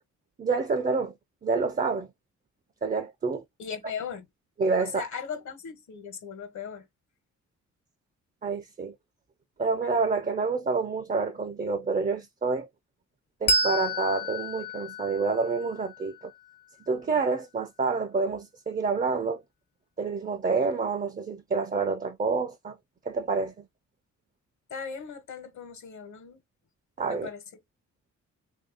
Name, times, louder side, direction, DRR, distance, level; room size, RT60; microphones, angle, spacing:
voice 1, 0.4-1.1 1.4-2.1 2.8-3.4 4.6-5.0 8.4-8.9 9.6-12.7 13.4-16.1 16.9-19.4 20.0-22.8 23.1-23.5 27.0-27.3, right 4 dB, 30° right, 0.5 m, -28 dB
voice 2, 3.6-4.3 4.8-6.9 24.7-26.4 27.1-27.4, left 6 dB, 70° left, 1.2 m, -38 dB
Bell, 13.5-16.6, equal, 35° left, 0.5 m, -30 dB
3.1 x 2.7 x 3.9 m
cardioid pair, 95°, 31 cm